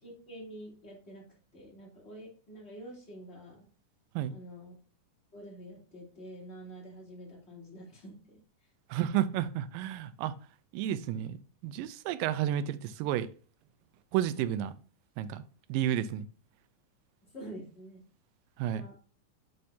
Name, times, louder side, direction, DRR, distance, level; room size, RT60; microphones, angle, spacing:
voice 1, 0.0-3.7 4.3-4.8 5.3-8.5 17.2-18.0 18.7-18.9, right 1 dB, 20° left, 2.5 m, -47 dB
voice 2, 8.9-10.4 10.7-11.4 11.6-13.3 14.1-14.7 15.2-15.4 15.7-16.3 18.6-18.9, right 11 dB, 90° right, 2.3 m, -31 dB
7.6 x 5.7 x 2.7 m
omnidirectional pair, 3.9 m